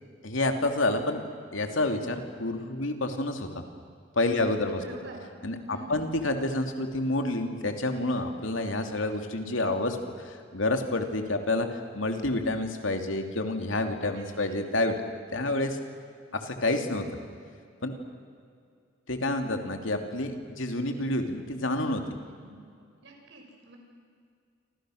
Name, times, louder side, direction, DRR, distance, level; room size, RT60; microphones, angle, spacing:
voice 1, 0.2-1.2 1.5-3.5 4.2-4.8 5.4-15.0 15.3-15.7 16.4-17.1 17.8-18.0 19.1-22.0, left 2 dB, 90° left, 5 dB, 2.7 m, -28 dB
voice 2, 4.4-5.3 5.7-6.1 14.1-14.6 22.2-22.5 23.0-23.8, right 2 dB, 65° right, 1 dB, 6.0 m, -47 dB
28.5 x 26.0 x 6.5 m, 2.3 s
head